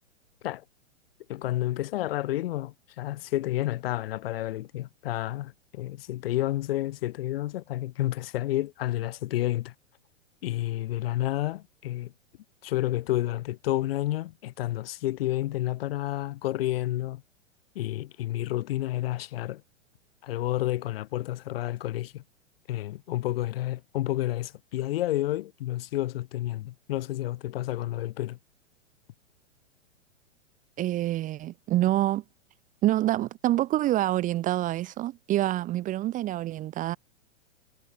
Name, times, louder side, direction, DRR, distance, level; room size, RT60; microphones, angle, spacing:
voice 1, 1.3-9.7 10.4-12.1 12.6-17.2 17.8-19.6 20.2-22.2 22.7-28.4, left 15 dB, 50° left, 1.7 m, -30 dB
voice 2, 30.8-32.2 32.8-37.0, right 14 dB, 20° right, 0.9 m, -26 dB
figure-of-eight pair, 110°, 37 cm